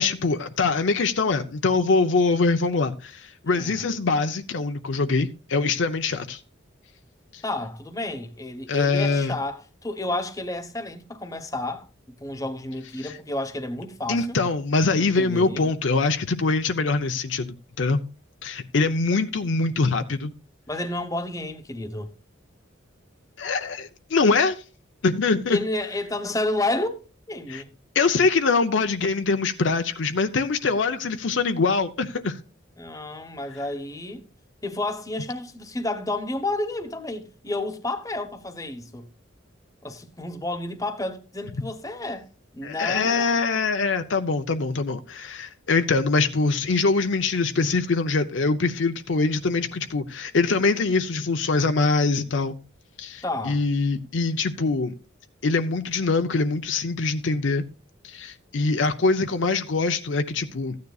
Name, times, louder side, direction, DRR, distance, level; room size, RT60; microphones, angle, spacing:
voice 1, 0.0-6.4 7.3-7.4 8.7-9.3 13.0-13.1 14.1-18.0 18.4-20.3 23.4-24.6 25.0-25.6 27.5-27.6 27.9-32.4 42.6-52.6 53.0-54.9 55.4-57.6 58.0-60.8, left 3 dB, 65° left, 0.6 m, -23 dB
voice 2, 3.5-3.9 7.4-11.9 12.2-14.4 15.0-15.7 20.7-22.1 25.5-27.0 27.3-27.7 32.8-34.3 34.6-39.1 39.8-43.4 53.2-53.6, left 2 dB, 15° left, 1.0 m, -31 dB
14.5 x 9.5 x 2.3 m
head